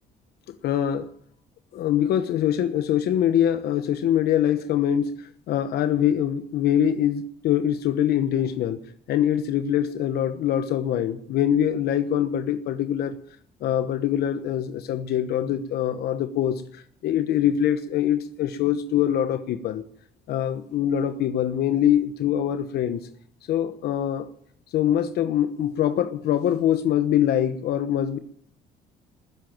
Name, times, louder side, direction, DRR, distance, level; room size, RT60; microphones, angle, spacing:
voice 1, 0.5-1.1 1.7-8.8 9.1-13.1 13.6-19.8 20.3-23.0 23.5-24.3 24.7-28.2, left 10 dB, 70° left, 1.1 m, -24 dB
20.5 x 7.8 x 9.0 m
cardioid pair, 110°, 17 cm